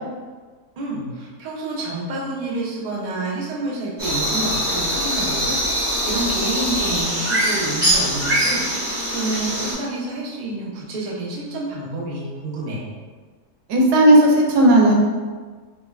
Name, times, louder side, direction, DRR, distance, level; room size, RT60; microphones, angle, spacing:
voice 1, 0.8-12.9, right 2 dB, 55° right, -5 dB, 0.5 m, -29 dB
sound 1, 4.0-9.7, equal, 20° right, 0.9 m, -22 dB
voice 2, 13.7-14.9, right 1 dB, 90° right, -1 dB, 1.1 m, -13 dB
3.6 x 2.2 x 2.3 m, 1.4 s
omnidirectional pair, 1.7 m